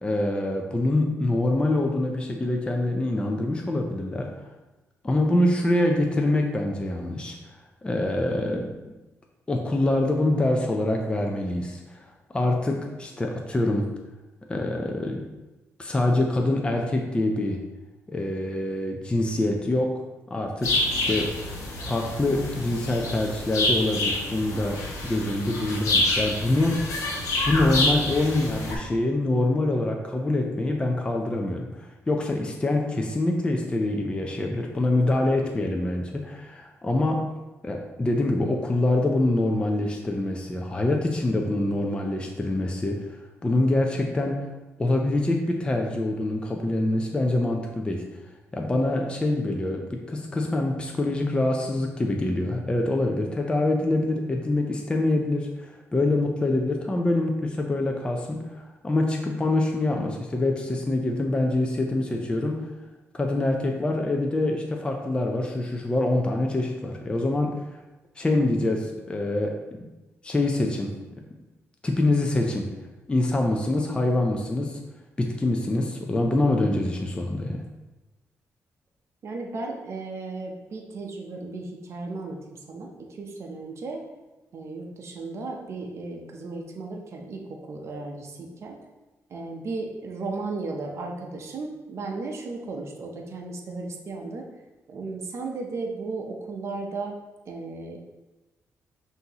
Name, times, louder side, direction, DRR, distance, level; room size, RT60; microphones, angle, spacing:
voice 1, 0.0-4.3 5.0-7.4 7.8-8.7 9.5-13.8 14.5-15.2 15.8-17.6 18.1-19.9 20.3-21.3 21.8-26.9 27.4-37.2 37.6-44.5 44.8-48.0 48.5-62.6 63.1-67.5 68.2-69.5 70.2-70.9 71.8-72.7 73.1-74.8 75.2-77.6, left 2 dB, 20° left, 1 dB, 0.5 m, -25 dB
sound 1, 20.6-28.8, left 2 dB, 85° left, 0.8 m, -27 dB
voice 2, 79.2-84.0 84.5-87.4 87.7-88.8 89.3-94.4 94.9-97.1 97.5-98.0, right 3 dB, 55° right, 1 dB, 0.6 m, -35 dB
5.7 x 2.7 x 2.8 m, 1.1 s
cardioid pair, 90°, 6 cm